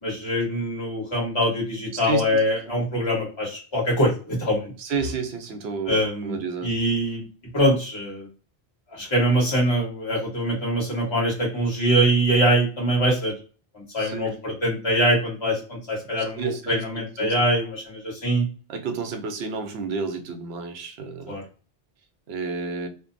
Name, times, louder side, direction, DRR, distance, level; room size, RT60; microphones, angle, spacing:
voice 1, 0.0-4.7 5.9-7.2 7.5-8.3 9.0-13.3 13.7-15.6 15.9-18.4 21.3-21.4, right 1 dB, 25° left, -4 dB, 1.2 m, -23 dB
voice 2, 2.0-2.4 2.7-2.8 4.8-6.7 14.0-14.3 16.4-17.3 18.7-21.4 22.3-22.9, right 5 dB, 75° right, 6 dB, 0.8 m, -31 dB
2.6 x 2.1 x 2.5 m, 0.36 s
omnidirectional pair, 1.1 m